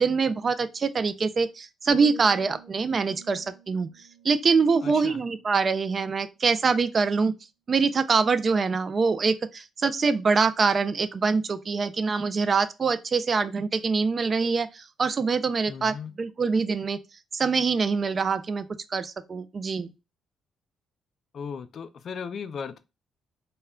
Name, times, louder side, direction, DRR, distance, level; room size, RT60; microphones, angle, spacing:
voice 1, 0.0-3.9 4.2-7.3 7.7-17.0 17.3-19.9, right 4 dB, 40° right, 0.3 m, -24 dB
sound 1, 1.9-5.9 6.2-6.6, right 6 dB, 75° right, 0.7 m, -47 dB
voice 2, 4.8-5.2 15.7-16.1 21.3-22.8, left 6 dB, 55° left, 0.3 m, -36 dB
2.2 x 2.1 x 3.6 m
cardioid pair, 90°, 0 cm